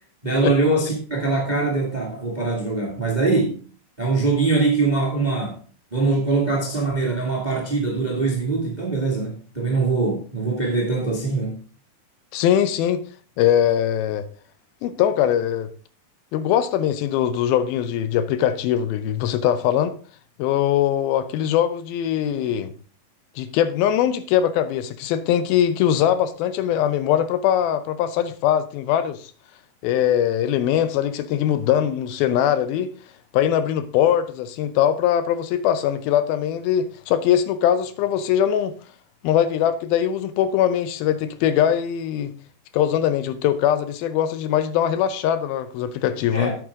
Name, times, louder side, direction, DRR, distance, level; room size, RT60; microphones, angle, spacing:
voice 1, 0.2-3.6 4.0-5.6 5.9-11.6 46.3-46.6, right 3 dB, 25° right, 0.9 m, -22 dB
voice 2, 12.3-13.0 13.4-14.2 14.8-15.7 16.3-19.9 20.4-22.7 23.4-29.2 29.8-32.9 33.3-38.7 39.2-42.3 42.7-46.5, left 10 dB, 80° left, 2.5 m, -21 dB
8.9 x 8.0 x 3.5 m
omnidirectional pair, 4.3 m